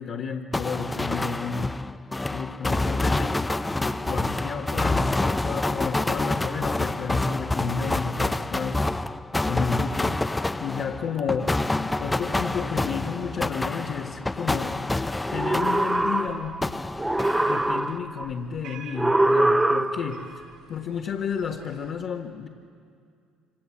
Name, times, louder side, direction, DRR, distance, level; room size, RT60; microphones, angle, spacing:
voice 1, 0.0-1.8 2.3-9.1 9.5-11.5 12.0-14.8 15.3-16.7 17.4-20.3 20.7-22.5, left 6 dB, 60° left, -2 dB, 1.9 m, -32 dB
sound 1, 0.5-16.3 16.6-18.0, left 2 dB, 15° left, 0.7 m, -27 dB
sound 2, 15.2-16.6 17.0-18.2 19.0-20.3, right 1 dB, 10° right, 1.2 m, -23 dB
sound 3, 15.7-21.9, right 5 dB, 70° right, 4.9 m, -49 dB
26.5 x 25.5 x 8.8 m, 2.3 s
supercardioid pair, 75°, 0 cm